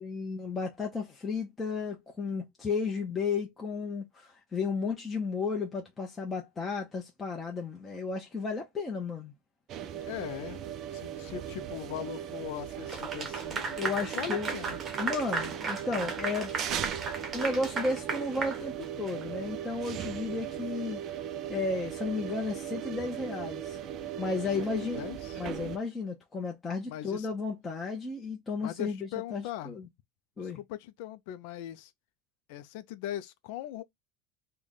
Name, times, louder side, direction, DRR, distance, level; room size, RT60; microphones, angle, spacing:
voice 1, 0.0-9.3 13.8-14.5 14.9-16.5 17.3-21.0 21.5-23.8 24.2-25.0 25.4-29.8 30.4-30.6, left 4 dB, 15° left, 0.7 m, -33 dB
sound 1, 9.7-25.8, right 10 dB, 40° right, 0.4 m, -38 dB
voice 2, 10.1-10.6 10.9-14.8 24.6-25.4 26.9-27.3 28.6-29.8 30.4-31.9 32.5-33.8, left 11 dB, 70° left, 0.4 m, -40 dB
Clapping / Applause, 12.9-19.2, right 4 dB, 25° right, 0.8 m, -35 dB
3.3 x 2.2 x 3.9 m
supercardioid pair, 150°, 0 cm